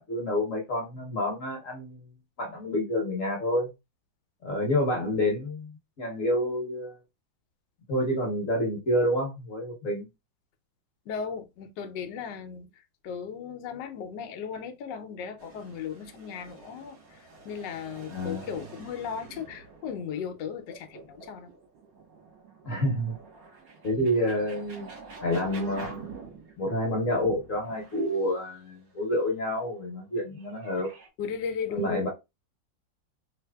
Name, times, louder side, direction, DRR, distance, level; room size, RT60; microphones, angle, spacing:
voice 1, 0.0-2.1 2.4-3.7 4.4-7.0 7.9-10.1 18.1-18.5 22.6-23.1 23.8-24.9 25.2-26.1 26.6-30.9 31.7-32.1, left 1 dB, 50° left, 1.2 m, -28 dB
voice 2, 11.1-12.7 13.0-21.5 31.2-32.1, left 7 dB, 75° left, 1.2 m, -36 dB
sound 1, 15.4-26.8 27.3-29.0 29.9-31.1, right 4 dB, 70° right, 1.9 m, -47 dB
3.3 x 3.2 x 2.2 m
omnidirectional pair, 2.1 m